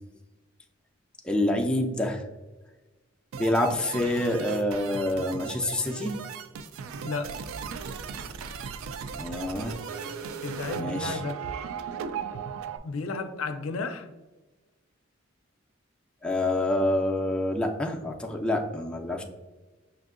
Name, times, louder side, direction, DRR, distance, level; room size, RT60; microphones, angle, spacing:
voice 1, 1.2-2.2 3.3-6.2 9.1-9.8 10.8-11.2 16.2-19.2, left 1 dB, 5° left, 0.3 m, -27 dB
sound 1, 3.3-12.8, right 6 dB, 80° right, 0.3 m, -37 dB
voice 2, 7.0-7.4 10.4-11.4 12.8-14.1, left 4 dB, 80° left, 0.4 m, -33 dB
5.7 x 2.6 x 2.4 m
head